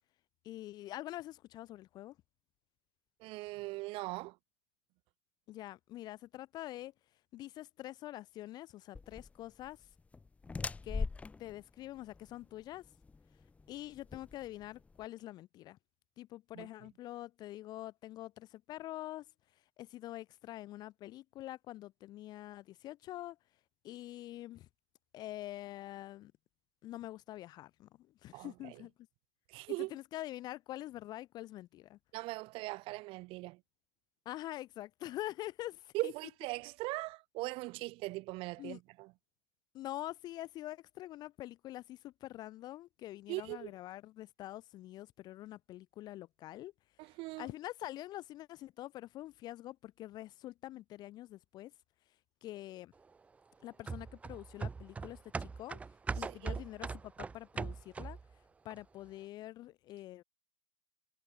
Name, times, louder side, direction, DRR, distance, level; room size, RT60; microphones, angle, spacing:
voice 1, 0.4-2.2 5.5-6.9 7.3-9.9 10.8-11.1 11.4-12.9 13.7-15.8 16.2-19.3 19.5-23.4 23.8-24.7 25.1-26.3 26.8-27.9 28.2-28.9 29.9-32.0 34.2-36.1 38.6-38.8 39.7-46.7 47.4-51.7 52.4-52.9 53.6-55.8 56.1-58.2 58.6-60.2, left 15 dB, 25° left, 1.1 m, -45 dB
voice 2, 3.2-4.4 16.5-16.7 28.3-28.8 29.5-29.9 32.1-33.6 35.9-39.1 43.3-43.7 47.0-47.5 56.2-56.6, right 22 dB, 35° right, 5.5 m, -40 dB
sound 1, 8.9-15.0, left 4 dB, 10° left, 2.2 m, -42 dB
sound 2, 53.9-58.3 58.7-58.8, right 4 dB, 10° right, 0.8 m, -40 dB
hypercardioid pair, 135°, 16 cm